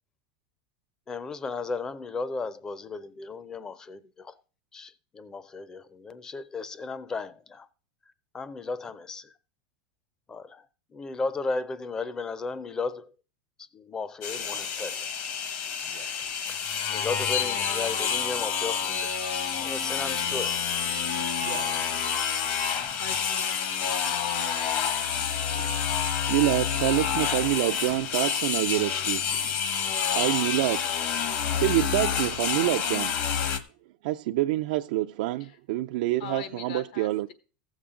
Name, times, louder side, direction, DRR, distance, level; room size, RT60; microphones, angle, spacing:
voice 1, 1.1-4.3 4.7-7.7 8.3-9.3 10.3-10.7 10.9-13.1 13.7-15.2 16.9-20.6 21.5-21.7, left 3 dB, 15° left, 0.5 m, -35 dB
sound 1, 14.2-33.6, left 7 dB, 45° left, 1.0 m, -28 dB
Male speech man speaking, 14.3-14.7 15.8-16.2 17.3-17.9 18.8-19.2 20.2-20.7 21.4-21.9 22.6-22.7, right 11 dB, 85° right, 1.0 m, -45 dB
voice 2, 23.0-23.7 35.4-35.6 36.2-37.3, left 8 dB, 75° left, 1.3 m, -41 dB
voice 3, 26.3-29.2 30.1-30.9 31.6-33.1 34.0-37.3, right 16 dB, 65° right, 0.4 m, -26 dB
15.0 x 7.2 x 3.7 m
supercardioid pair, 160°, 4 cm